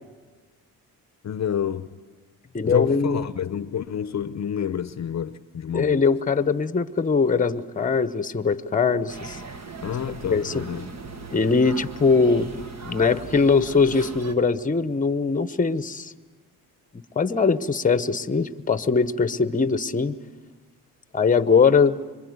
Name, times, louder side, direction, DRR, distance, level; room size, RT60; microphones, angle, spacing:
voice 1, 1.2-1.9 2.6-6.1 9.8-10.9, left 9 dB, 50° left, 0.8 m, -28 dB
voice 2, 2.5-3.3 5.7-9.4 10.3-10.6 11.3-12.5 12.8-16.1 17.2-20.2 21.1-22.0, left 5 dB, 20° left, 1.0 m, -21 dB
sound 1, 9.1-14.3, right 4 dB, 45° right, 1.8 m, -38 dB
26.0 x 22.5 x 9.5 m
cardioid pair, 90°, 36 cm